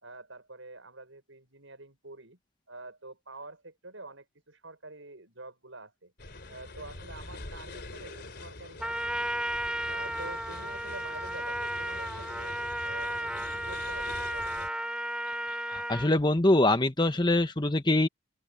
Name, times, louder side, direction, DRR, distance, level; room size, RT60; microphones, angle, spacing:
voice 1, 0.0-2.4 2.7-6.1 6.5-9.5 9.9-12.5 12.8-14.7, right 2 dB, 70° right, 6.6 m, -47 dB
sound 1, 6.2-14.7, left 2 dB, 55° left, 3.7 m, -45 dB
Trumpet, 8.8-16.1, right 1 dB, 5° right, 3.9 m, -34 dB
voice 2, 15.7-18.1, left 1 dB, 20° left, 1.3 m, -24 dB
open air
head